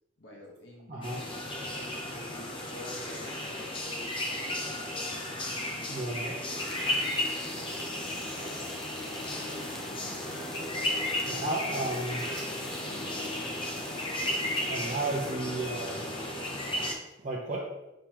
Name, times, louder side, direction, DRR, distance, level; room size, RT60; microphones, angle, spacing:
voice 1, 0.2-1.2 1.6-4.1, left 1 dB, 55° left, -2 dB, 1.2 m, -49 dB
voice 2, 0.9-1.2 5.9-6.6 11.3-12.2 14.6-16.1 17.2-17.7, right 2 dB, 35° right, -5 dB, 0.8 m, -33 dB
sound 1, 1.0-16.9, left 1 dB, 25° left, 0.8 m, -34 dB
sound 2, 6.5-15.3, equal, ahead, 0.4 m, -47 dB
6.6 x 5.1 x 3.0 m, 0.94 s
head